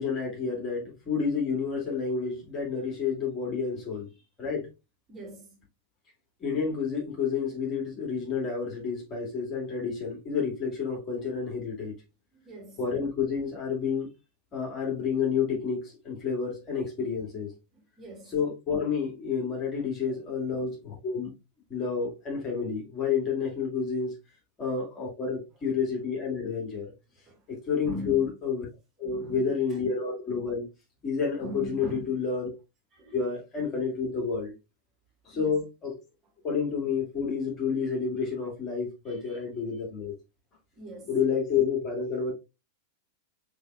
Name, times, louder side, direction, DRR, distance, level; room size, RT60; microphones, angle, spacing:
voice 1, 0.0-4.1 4.4-4.7 6.4-12.0 12.8-14.1 14.5-17.5 18.3-21.3 21.7-24.1 24.6-26.9 27.5-28.7 29.0-30.7 31.0-32.5 33.1-34.5 35.2-35.9 36.4-40.1 41.1-42.3, left 6 dB, 25° left, 2.2 m, -29 dB
voice 2, 5.1-5.6 12.4-12.8 17.7-18.3 20.0-20.2 27.3-27.4 27.8-28.3 29.0-29.8 31.4-32.1 32.9-33.1 35.3-35.6 39.1-39.4 40.8-41.2, right 1 dB, 25° right, 2.3 m, -42 dB
6.5 x 3.3 x 2.3 m
figure-of-eight pair, 90°, 0 cm